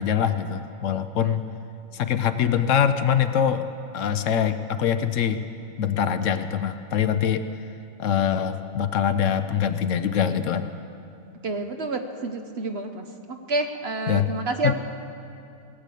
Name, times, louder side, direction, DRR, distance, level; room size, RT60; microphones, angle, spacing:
voice 1, 0.0-1.4 1.9-3.7 3.9-5.4 5.8-7.4 8.0-10.7 14.1-14.3 14.6-14.7, left 8 dB, 70° left, 10 dB, 0.9 m, -23 dB
voice 2, 11.4-14.7, right 2 dB, 50° right, 6 dB, 1.0 m, -29 dB
18.5 x 7.8 x 8.3 m, 2.6 s
omnidirectional pair, 1.5 m